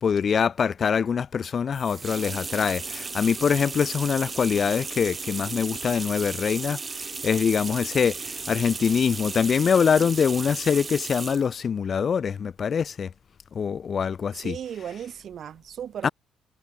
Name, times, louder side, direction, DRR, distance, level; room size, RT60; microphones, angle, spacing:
voice 1, 0.0-13.1 13.5-14.6 16.0-16.1, left 7 dB, 50° left, 0.9 m, -24 dB
sound 1, 1.7-11.5, right 4 dB, 30° right, 1.4 m, -35 dB
voice 2, 14.3-16.1, right 9 dB, 65° right, 2.2 m, -36 dB
cardioid pair, 90°, 0 cm